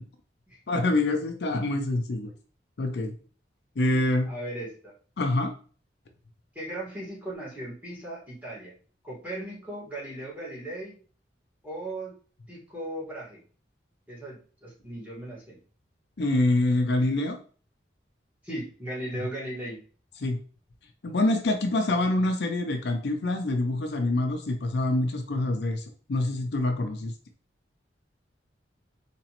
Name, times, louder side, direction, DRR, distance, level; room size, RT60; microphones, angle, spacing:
voice 1, 0.7-2.3 2.8-3.1 3.8-4.3 5.2-5.5 16.2-17.4 20.2-20.4 21.0-27.1, left 2 dB, 65° left, 5 dB, 0.5 m, -26 dB
voice 2, 4.3-4.9 6.6-8.7 9.0-11.0 11.6-12.1 12.5-13.4 14.1-15.6 18.4-19.8, right 1 dB, 10° right, -7 dB, 1.7 m, -37 dB
4.0 x 2.9 x 2.9 m, 0.41 s
head